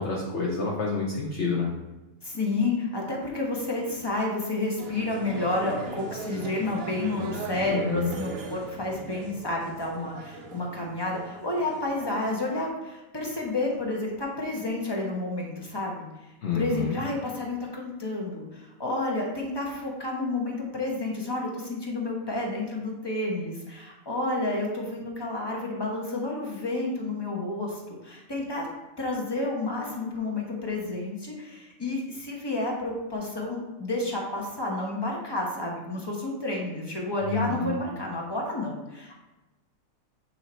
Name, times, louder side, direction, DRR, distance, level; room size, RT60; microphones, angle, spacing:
voice 1, 0.0-1.7 7.5-8.1 16.4-17.0 37.3-37.8, left 4 dB, 55° left, -3 dB, 1.1 m, -28 dB
voice 2, 2.2-16.1 16.5-28.7 29.0-39.1, left 2 dB, 20° left, -2 dB, 1.0 m, -30 dB
sound 1, 4.8-12.7, right 3 dB, 50° right, 0.9 m, -39 dB
8.7 x 2.9 x 4.3 m, 1.1 s
omnidirectional pair, 1.5 m